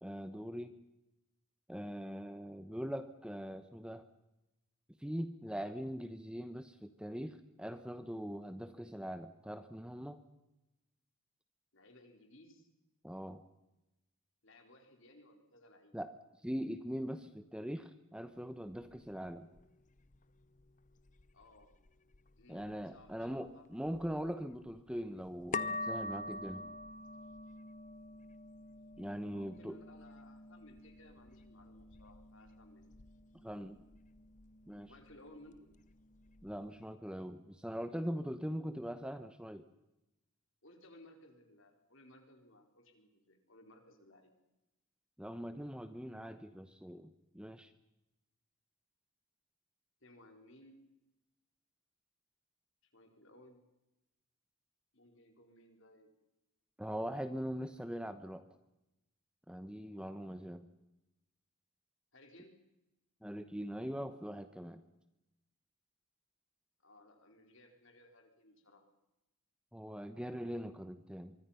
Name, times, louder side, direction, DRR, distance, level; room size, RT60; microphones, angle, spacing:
voice 1, 0.0-0.8 1.7-4.0 5.0-10.2 13.0-13.4 15.9-16.1 16.4-19.5 22.5-26.7 29.0-29.8 33.4-33.8 34.7-34.9 36.4-39.6 45.2-47.7 56.8-58.4 59.5-60.7 63.2-64.8 69.7-71.3, equal, 5° right, 10 dB, 1.0 m, -42 dB
voice 2, 11.7-12.7 14.4-15.9 21.3-21.7 22.3-23.7 29.3-33.0 34.9-35.7 40.6-44.3 50.0-50.8 52.9-53.6 54.9-56.1 62.1-62.6 66.8-68.8, left 1 dB, 60° left, 5 dB, 4.3 m, -60 dB
sound 1, 18.3-36.9, left 2 dB, 35° left, 0.7 m, -47 dB
25.0 x 24.0 x 5.8 m, 0.94 s
head